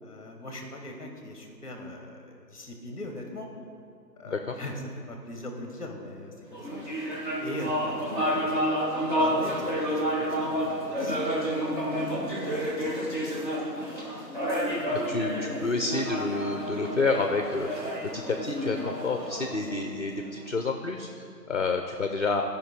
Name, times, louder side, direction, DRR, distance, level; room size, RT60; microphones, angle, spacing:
voice 1, 0.0-3.5 4.2-4.8 5.1-6.8 7.4-8.6 9.2-13.5, left 1 dB, 20° left, 3 dB, 1.1 m, -41 dB
voice 2, 4.2-4.5 14.9-17.8 18.1-22.4, left 3 dB, 50° left, 4 dB, 0.5 m, -29 dB
sound 1, 6.5-20.2, equal, 30° right, 1.7 m, -30 dB
12.0 x 5.2 x 4.8 m, 2.7 s
figure-of-eight pair, 160°, 50 cm